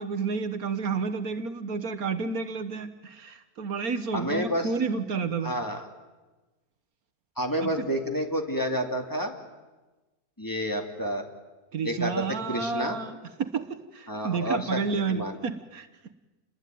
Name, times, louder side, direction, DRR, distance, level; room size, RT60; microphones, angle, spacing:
voice 1, 0.0-5.5 7.6-7.7 11.7-15.9, right 5 dB, 70° right, 8 dB, 1.6 m, -30 dB
voice 2, 4.1-4.7 5.4-5.8 7.4-9.4 10.4-11.2 11.8-13.0 14.1-14.8 15.1-15.4, equal, 10° left, 3 dB, 2.7 m, -29 dB
29.5 x 21.0 x 9.3 m, 1.2 s
omnidirectional pair, 1.6 m